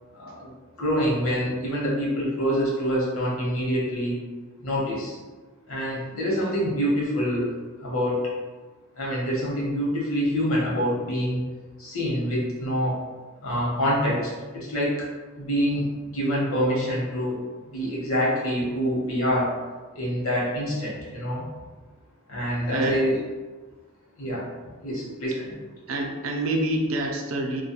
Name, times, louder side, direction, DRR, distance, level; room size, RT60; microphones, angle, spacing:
voice 1, 0.1-0.5 0.8-4.2 4.6-5.2 5.7-7.5 7.8-8.3 9.0-11.4 11.8-13.0 13.4-15.1 15.4-17.4 17.7-19.5 19.9-21.5 22.3-23.1 24.2-24.5 24.8-25.6, equal, 70° left, -5 dB, 0.9 m, -26 dB
voice 2, 22.7-23.0 25.0-25.1 25.9-27.6, right 1 dB, 70° right, 1 dB, 0.4 m, -27 dB
2.2 x 2.2 x 2.8 m, 1.3 s
head